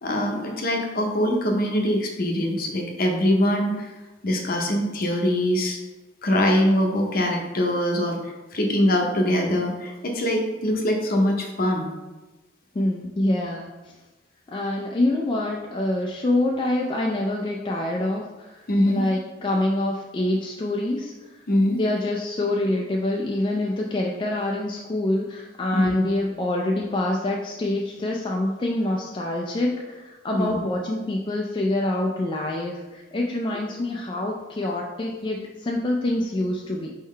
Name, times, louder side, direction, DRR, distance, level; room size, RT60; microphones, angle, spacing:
voice 1, 0.0-3.9 4.2-5.8 6.2-11.8 18.7-19.0 21.5-21.8 25.7-25.9 30.3-30.6, left 1 dB, 50° left, 2 dB, 0.7 m, -23 dB
voice 2, 12.7-13.9 14.5-21.4 21.7-36.9, left 1 dB, 25° left, -1 dB, 0.3 m, -26 dB
4.4 x 3.7 x 3.2 m, 1.1 s
head